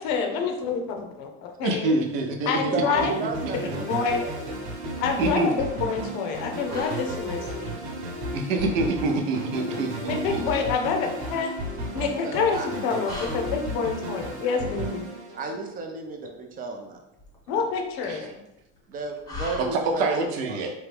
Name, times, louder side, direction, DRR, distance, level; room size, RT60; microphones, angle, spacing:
voice 1, 0.0-1.9 2.5-3.1 3.8-4.2 5.0-7.8 10.0-11.5 11.9-15.1 17.5-18.4, left 5 dB, 60° left, 3 dB, 0.8 m, -27 dB
voice 2, 1.6-2.7 3.4-3.7 5.2-5.5 8.3-10.4 18.1-18.2 19.7-20.7, right 2 dB, 80° right, 3 dB, 0.8 m, -26 dB
voice 3, 2.7-3.8 4.2-4.3 10.4-10.5 12.2-12.7 15.4-17.0 18.9-20.6, right 3 dB, 25° right, 3 dB, 0.4 m, -32 dB
sound 1, 3.0-15.9, right 1 dB, 45° right, 1.0 m, -34 dB
sound 2, 4.0-20.3, left 2 dB, 10° left, 0.7 m, -45 dB
3.1 x 2.3 x 3.3 m, 0.88 s
supercardioid pair, 115°, 38 cm